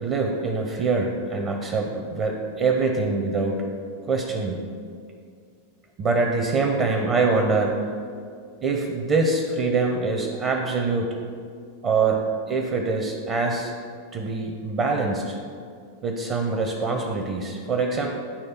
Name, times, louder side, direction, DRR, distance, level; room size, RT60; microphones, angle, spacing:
voice 1, 0.0-3.6 4.1-4.6 6.0-7.8 8.6-11.2 11.8-13.7 14.1-15.4 16.0-18.1, right 3 dB, 35° right, 2 dB, 0.6 m, -24 dB
9.6 x 3.2 x 4.3 m, 2.2 s
figure-of-eight pair, 90°, 0 cm